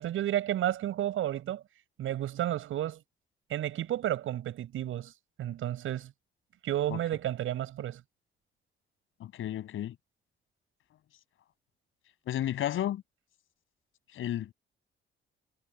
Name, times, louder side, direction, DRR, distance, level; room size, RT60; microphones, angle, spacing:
voice 1, 0.0-1.6 2.0-3.0 3.5-5.1 5.4-6.1 6.6-8.0, right 12 dB, 85° right, 7.4 m, -31 dB
voice 2, 9.2-9.9 12.3-13.0 14.1-14.5, left 12 dB, 80° left, 6.9 m, -32 dB
cardioid pair, 180°, 21 cm